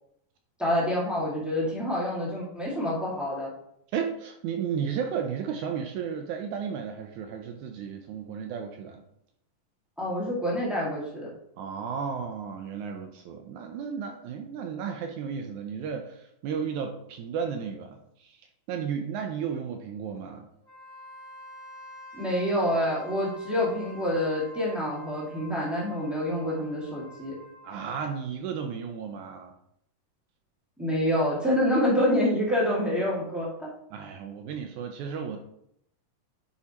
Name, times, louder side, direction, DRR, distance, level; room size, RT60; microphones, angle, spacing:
voice 1, 0.6-3.5 10.0-11.3 22.1-27.3 30.8-33.7, left 1 dB, ahead, -7 dB, 0.5 m, -27 dB
voice 2, 3.9-9.0 11.6-18.3 18.7-20.5 27.6-29.5 33.9-35.4, right 7 dB, 80° right, 5 dB, 1.7 m, -33 dB
Wind instrument woodwind instrument, 20.6-28.1, equal, 60° left, 2.8 m, -47 dB
9.8 x 4.7 x 2.9 m, 0.76 s
omnidirectional pair, 3.9 m